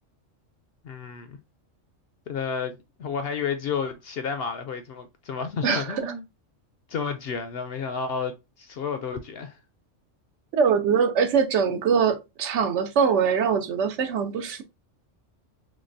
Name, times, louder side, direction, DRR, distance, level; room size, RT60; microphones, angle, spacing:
voice 1, 0.8-1.4 2.3-6.2 6.9-9.6, left 6 dB, 65° left, 0.6 m, -31 dB
voice 2, 5.6-6.1 10.5-14.6, right 6 dB, 70° right, 0.9 m, -23 dB
3.8 x 3.2 x 2.6 m
omnidirectional pair, 1.3 m